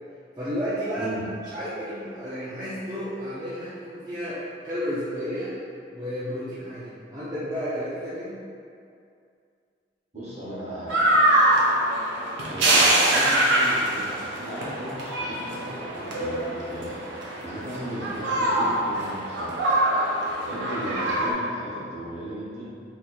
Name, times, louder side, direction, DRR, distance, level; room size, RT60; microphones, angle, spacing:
voice 1, 0.4-1.1 1.5-5.5 5.9-8.4, equal, 20° right, -13 dB, 0.5 m, -32 dB
voice 2, 10.1-11.0 12.5-17.0 17.4-19.5 20.4-22.7, right 1 dB, 35° right, -9 dB, 0.9 m, -36 dB
sound 1, 10.9-21.3, right 1 dB, 85° right, 0.6 m, -24 dB
4.2 x 2.7 x 2.3 m, 2.4 s
head